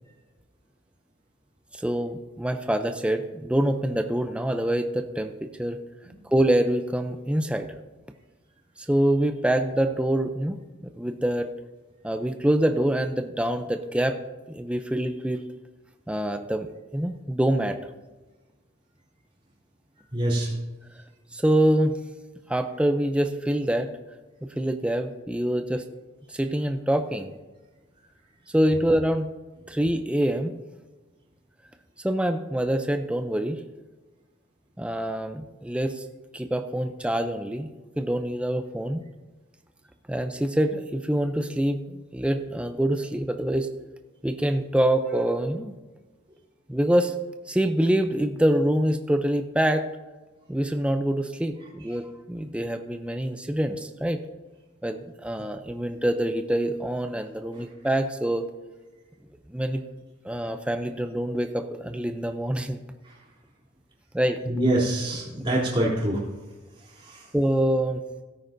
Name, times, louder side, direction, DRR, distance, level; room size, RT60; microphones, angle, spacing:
voice 1, 1.7-5.8 6.2-7.7 8.8-10.6 10.9-11.5 12.0-14.2 14.5-15.4 16.1-17.8 21.3-22.0 22.5-23.9 24.6-25.8 26.3-27.3 28.5-29.3 29.7-30.5 32.0-33.6 34.8-36.1 36.3-37.7 38.0-39.0 40.1-43.7 44.2-45.8 46.7-47.2 47.5-49.9 50.5-54.2 54.8-58.5 59.5-59.8 60.2-62.8 64.1-64.4 67.3-68.0, right 1 dB, 5° right, 6 dB, 0.4 m, -25 dB
voice 2, 20.1-20.5 57.5-57.6 63.0-63.2 64.4-66.2 66.9-67.3, right 1 dB, 25° right, -4 dB, 3.1 m, -25 dB
17.0 x 9.4 x 2.6 m, 1.2 s
head